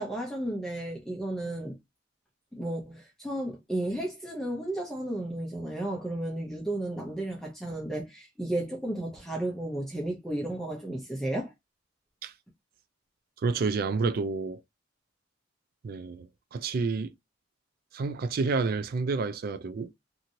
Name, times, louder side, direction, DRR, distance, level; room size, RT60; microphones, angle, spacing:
voice 1, 0.0-1.8 2.5-11.5, right 1 dB, 5° left, 0.6 m, -33 dB
voice 2, 13.4-14.6 15.8-17.1 17.9-19.9, right 4 dB, 50° right, 0.3 m, -29 dB
2.9 x 2.6 x 2.6 m
head